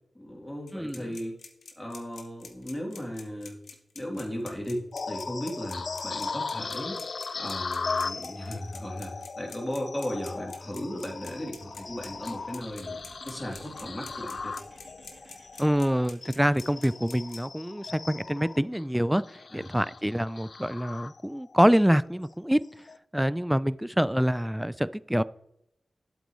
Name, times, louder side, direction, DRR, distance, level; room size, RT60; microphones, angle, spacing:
voice 1, 0.1-1.3 1.8-3.6 3.9-7.0 7.3-13.0 13.2-14.6 19.5-19.7, equal, 15° left, 3.1 m, -36 dB
sound 1, 0.7-17.4, left 5 dB, 85° left, 1.2 m, -46 dB
voice 2, 0.7-1.0 15.6-19.2 19.5-22.6 23.1-25.2, equal, 5° right, 0.4 m, -25 dB
sound 2, 4.9-21.6 22.0-22.3 22.8-23.0, left 4 dB, 60° left, 0.4 m, -38 dB
sound 3, 11.3-17.1, right 1 dB, 50° right, 3.5 m, -55 dB
8.1 x 8.1 x 3.2 m
cardioid pair, 60°, 0 cm